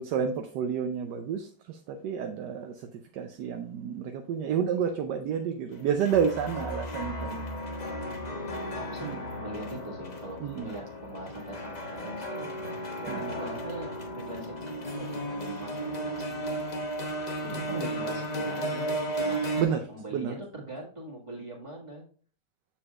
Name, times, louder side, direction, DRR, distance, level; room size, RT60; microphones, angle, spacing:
voice 1, 0.0-2.7 3.1-7.4 9.0-9.2 10.4-10.7 13.1-13.3 17.5-17.9 19.6-19.9 20.1-20.3, right 7 dB, 70° right, 6 dB, 1.1 m, -30 dB
sound 1, 5.7-19.6, right 1 dB, 35° left, 0.7 m, -34 dB
voice 2, 8.8-12.5 13.0-14.5 14.9-15.7 16.0-16.6 17.4-18.9 19.2-22.0, right 1 dB, 15° right, -3 dB, 1.8 m, -42 dB
7.1 x 7.0 x 2.4 m, 0.44 s
omnidirectional pair, 2.1 m